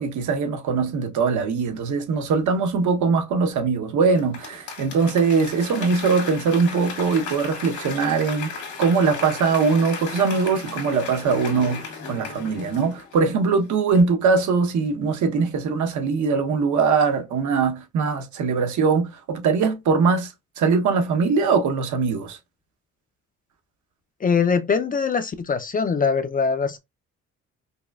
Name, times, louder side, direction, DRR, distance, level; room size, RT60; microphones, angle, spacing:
voice 1, 0.0-22.4, right 5 dB, 75° right, 0.9 m, -22 dB
Applause / Crowd, 4.2-13.6 14.0-14.1, left 5 dB, 75° left, 1.7 m, -35 dB
voice 2, 24.2-26.8, left 5 dB, 30° left, 0.4 m, -22 dB
5.1 x 2.1 x 2.3 m
cardioid pair, 90°, 30 cm